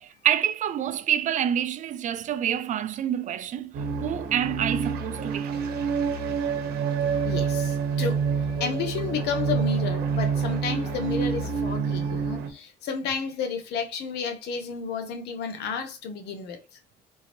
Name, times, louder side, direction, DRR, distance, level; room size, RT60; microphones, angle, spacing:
voice 1, 0.0-3.7 4.0-5.6, right 10 dB, 50° right, 0.4 m, -27 dB
sound 1, 3.7-12.5, right 6 dB, 65° right, 0.9 m, -27 dB
voice 2, 7.1-16.8, left 6 dB, 80° left, 0.9 m, -32 dB
3.7 x 2.6 x 2.9 m
cardioid pair, 110°, 17 cm